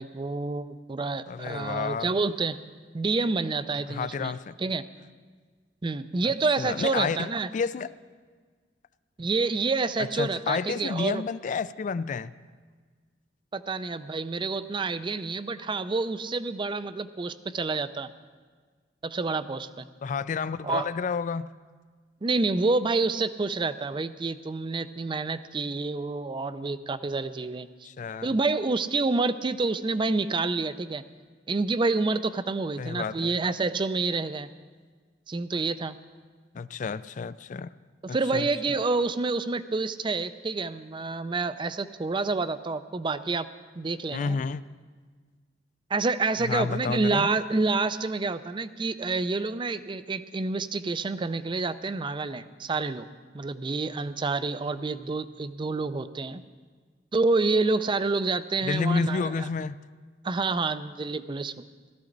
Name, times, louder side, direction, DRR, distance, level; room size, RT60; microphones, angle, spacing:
voice 1, 0.0-2.6 2.9-4.3 4.6-4.8 5.8-7.5 9.2-11.2 13.5-18.1 19.0-19.8 20.6-20.9 22.2-27.7 28.2-31.0 31.5-34.5 35.3-36.0 38.0-43.5 43.8-44.4 45.9-53.1 53.3-56.4 57.1-59.5 60.2-61.5, right 3 dB, 25° right, 0.4 m, -28 dB
voice 2, 1.3-2.1 3.9-4.6 6.2-6.3 6.6-7.9 10.0-12.3 20.0-21.5 27.8-28.3 32.8-33.4 36.5-37.7 38.1-38.5 44.1-44.6 46.4-47.3 58.6-59.8, left 5 dB, 45° left, 0.3 m, -30 dB
16.5 x 13.0 x 3.9 m
head